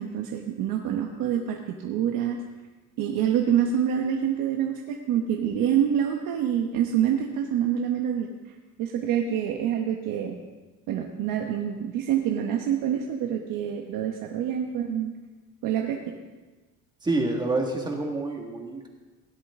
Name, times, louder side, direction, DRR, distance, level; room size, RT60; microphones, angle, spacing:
voice 1, 0.0-2.4 3.0-8.3 8.8-10.4 10.9-15.1 15.6-16.1, right 9 dB, 85° right, 2 dB, 1.1 m, -26 dB
voice 2, 17.0-18.9, right 2 dB, 15° right, 1 dB, 1.6 m, -27 dB
17.0 x 11.0 x 3.7 m, 1.3 s
cardioid pair, 160°, 33 cm